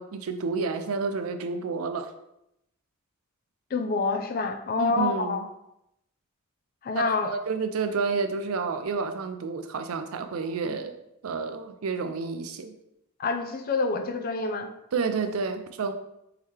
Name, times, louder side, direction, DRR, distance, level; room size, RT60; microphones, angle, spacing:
voice 1, 0.0-2.1 4.8-5.5 6.9-10.9 11.2-12.7 14.9-15.9, right 4 dB, 75° right, 8 dB, 0.5 m, -30 dB
voice 2, 3.7-5.5 6.8-7.3 13.2-14.7, left 3 dB, 45° left, 7 dB, 0.5 m, -27 dB
4.1 x 3.9 x 3.2 m, 0.82 s
head